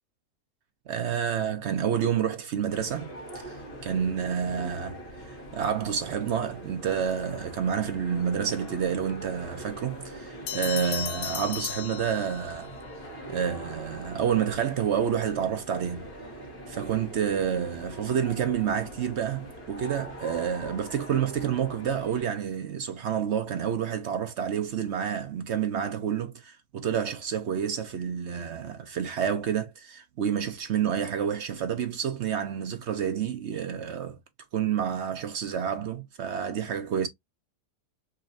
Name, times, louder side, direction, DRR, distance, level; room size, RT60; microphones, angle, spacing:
voice 1, 0.9-3.5 3.8-12.7 13.3-16.1 16.7-34.2 34.5-37.1, right 8 dB, 60° right, 0.7 m, -29 dB
sound 1, 2.7-22.2, right 1 dB, 35° left, 2.0 m, -42 dB
sound 2, 10.5-12.7, left 10 dB, 75° left, 1.3 m, -35 dB
4.1 x 3.0 x 2.6 m
omnidirectional pair, 1.7 m